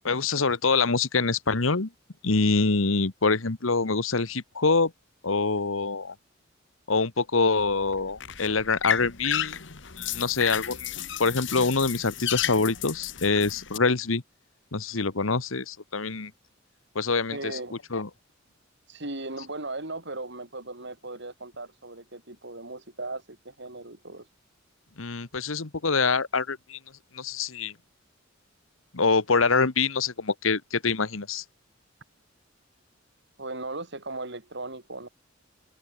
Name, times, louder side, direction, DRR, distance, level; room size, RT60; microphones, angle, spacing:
voice 1, 0.0-1.9 2.2-4.9 5.2-6.1 6.9-9.7 10.0-10.9 11.2-14.2 14.7-16.3 16.9-17.5 17.9-18.1 25.0-26.8 27.1-27.7 28.9-31.4, left 4 dB, 90° left, 1.4 m, -25 dB
sound 1, 7.6-13.8, left 10 dB, 65° left, 2.1 m, -33 dB
voice 2, 17.3-17.8 18.9-24.3 33.4-35.1, right 2 dB, 60° right, 6.7 m, -37 dB
head